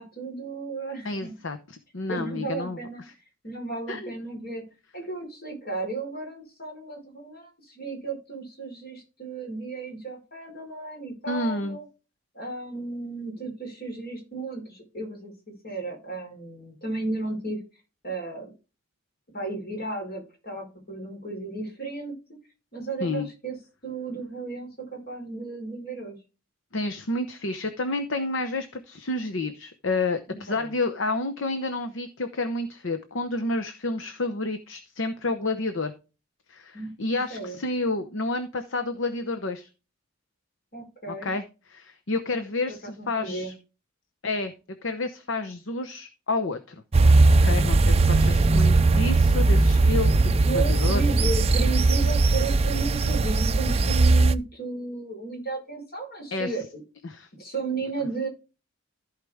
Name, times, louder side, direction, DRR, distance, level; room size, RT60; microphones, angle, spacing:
voice 1, 0.0-1.3 2.1-3.0 3.4-4.6 4.9-11.8 12.3-17.6 18.0-18.5 19.3-22.2 22.7-23.6 23.8-26.2 30.3-30.7 36.7-36.9 37.3-37.6 40.7-41.3 42.8-43.5 47.9-48.4 50.3-56.8 57.4-58.3, right 3 dB, 45° left, 1 dB, 4.6 m, -34 dB
voice 2, 1.0-2.8 3.9-4.1 11.3-11.8 23.0-23.3 26.7-35.9 36.5-39.7 41.2-41.4 41.7-43.5 44.2-44.5 44.8-46.7 47.4-50.3 50.5-51.0 56.3-56.5 57.0-57.3 57.8-57.9, left 2 dB, 65° left, 7 dB, 0.9 m, -30 dB
sound 1, 46.9-54.3, right 3 dB, 30° right, 0.4 m, -19 dB
14.5 x 4.9 x 3.5 m, 0.31 s
head